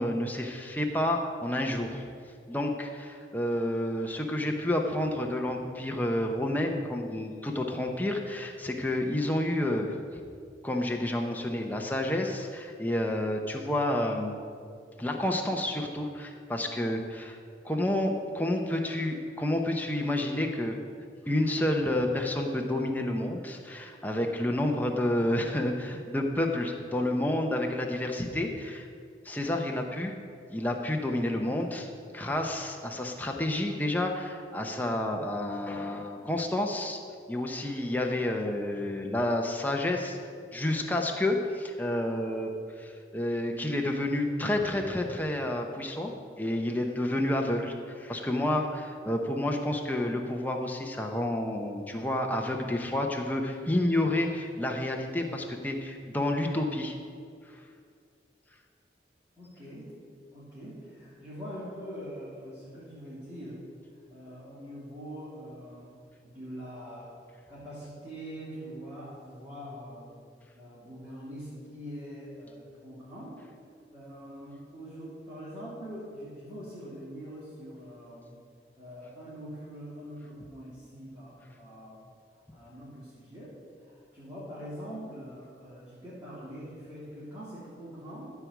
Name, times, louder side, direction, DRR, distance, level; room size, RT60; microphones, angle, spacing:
voice 1, 0.0-2.0 2.5-10.2 10.6-14.4 15.0-17.4 17.6-20.8 21.3-28.9 29.2-30.1 30.5-37.0 37.3-40.2 40.5-56.9, left 1 dB, 10° left, 2 dB, 0.9 m, -30 dB
voice 2, 59.4-59.9 60.3-63.6 64.1-65.9 66.2-67.1 67.5-70.2 70.5-73.4 73.9-78.4 78.8-82.1 82.5-83.6 83.8-88.3, equal, 20° right, -11 dB, 2.9 m, -43 dB
14.0 x 4.7 x 8.2 m, 2.3 s
head